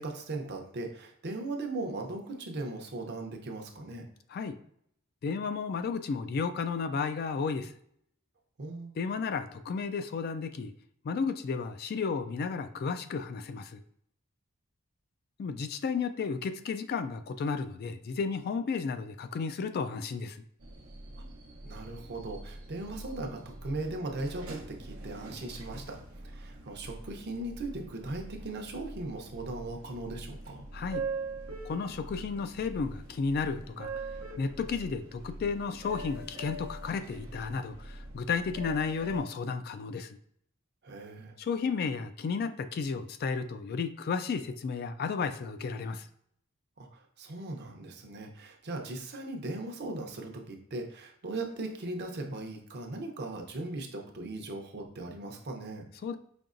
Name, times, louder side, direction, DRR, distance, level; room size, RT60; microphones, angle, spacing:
voice 1, 0.0-4.0 8.6-8.9 21.6-26.0 26.2-30.6 40.8-41.3 46.8-55.9, right 2 dB, 50° right, 3 dB, 0.7 m, -38 dB
voice 2, 5.2-7.7 9.0-10.7 11.0-13.8 15.4-20.4 30.7-31.0 31.6-34.1 34.4-40.2 41.4-46.1 56.0-56.2, left 5 dB, 50° left, 10 dB, 0.3 m, -33 dB
sound 1, 20.6-39.2, right 2 dB, 90° right, 0.7 m, -43 dB
5.2 x 2.8 x 2.5 m, 0.69 s
head